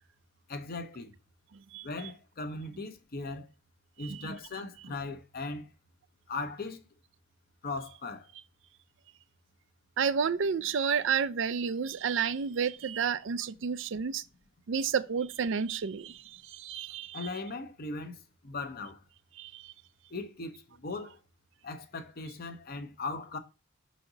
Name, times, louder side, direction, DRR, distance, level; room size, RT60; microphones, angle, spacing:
voice 1, 0.5-1.1 1.8-3.5 4.0-5.7 6.3-6.8 7.6-8.3 17.1-18.2 18.4-19.0 20.1-21.2 21.6-23.4, left 3 dB, 50° left, 0.7 m, -38 dB
voice 2, 10.0-14.2 14.7-16.1 16.5-17.2 19.4-19.6, right 6 dB, 65° right, 0.4 m, -30 dB
5.8 x 4.1 x 3.9 m
head